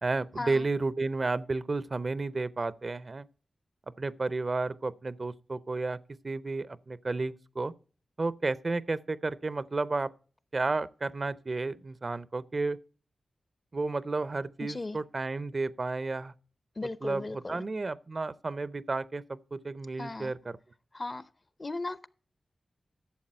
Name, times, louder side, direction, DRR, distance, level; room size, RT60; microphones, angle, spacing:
voice 1, 0.0-3.3 4.0-6.0 6.2-7.7 8.2-10.1 10.5-12.8 13.7-16.3 17.0-20.6, right 3 dB, 50° right, 0.5 m, -32 dB
voice 2, 14.6-15.0 16.8-17.6 20.0-20.3 20.9-21.2 21.6-22.1, left 2 dB, 40° left, 0.7 m, -36 dB
11.5 x 7.2 x 4.4 m
cardioid pair, 45°, 0 cm